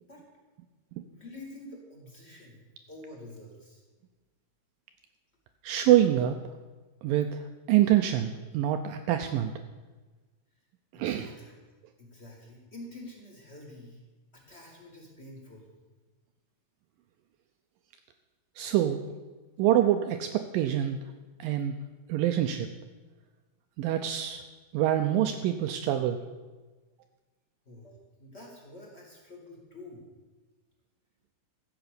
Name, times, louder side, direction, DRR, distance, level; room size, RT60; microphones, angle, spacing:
voice 1, 1.1-3.8 10.9-11.5 12.0-14.0 14.3-15.7 27.6-30.1, left 1 dB, 20° left, -3 dB, 2.5 m, -48 dB
voice 2, 5.6-6.4 7.0-9.5 10.9-11.3 18.6-19.0 19.6-21.0 21.4-21.8 22.1-22.7 23.8-24.4 24.7-26.2, right 12 dB, 80° right, 7 dB, 2.1 m, -25 dB
14.0 x 8.0 x 6.7 m, 1.3 s
omnidirectional pair, 4.5 m